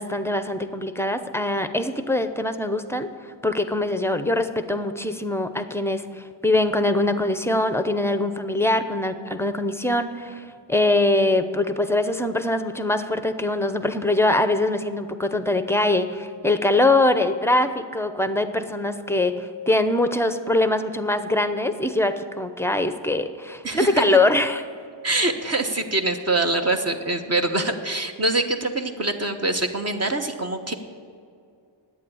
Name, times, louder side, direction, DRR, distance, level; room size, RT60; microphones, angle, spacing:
voice 1, 0.0-3.1 3.4-24.6, left 2 dB, 5° left, 9 dB, 0.7 m, -23 dB
voice 2, 23.6-24.0 25.0-30.7, right 2 dB, 30° right, 5 dB, 1.1 m, -24 dB
10.5 x 9.0 x 8.5 m, 2.3 s
cardioid pair, 105°, 48 cm